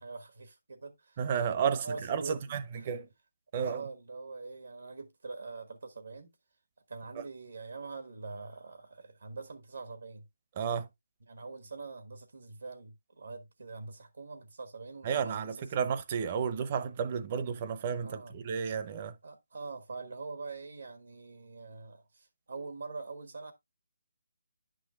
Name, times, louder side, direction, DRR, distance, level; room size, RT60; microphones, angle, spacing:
voice 1, 0.0-2.9 3.5-6.3 6.9-10.2 11.3-15.7 18.0-18.4 19.2-23.5, right 4 dB, 75° right, 1.4 m, -44 dB
voice 2, 1.2-3.1 3.5-3.8 10.6-10.9 15.0-19.1, right 7 dB, 35° right, 0.8 m, -32 dB
10.0 x 6.3 x 2.4 m
figure-of-eight pair, 155°, 0 cm